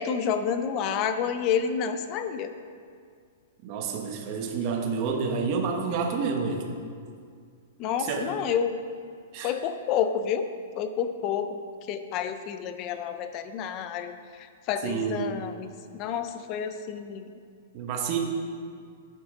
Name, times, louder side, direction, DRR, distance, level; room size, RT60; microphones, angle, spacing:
voice 1, 0.0-2.5 7.8-8.8 9.4-10.5 10.8-11.6 11.9-17.3, left 7 dB, 25° left, 10 dB, 0.4 m, -29 dB
voice 2, 3.6-6.6 8.0-8.3 9.3-9.5 14.8-15.3 17.7-18.2, right 5 dB, 25° right, 2 dB, 0.9 m, -29 dB
11.0 x 9.7 x 3.6 m, 2.2 s
hypercardioid pair, 180°, 0 cm